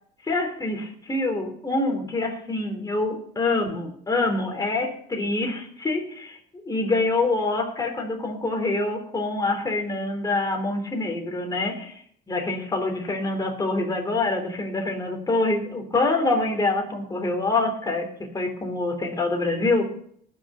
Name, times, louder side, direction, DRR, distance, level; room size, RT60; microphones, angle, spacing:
voice 1, 0.3-6.4 6.6-11.9 12.3-18.1 18.3-19.8, left 2 dB, 20° left, 3 dB, 3.5 m, -25 dB
19.5 x 6.5 x 5.6 m, 0.64 s
cardioid pair, 110°, 17 cm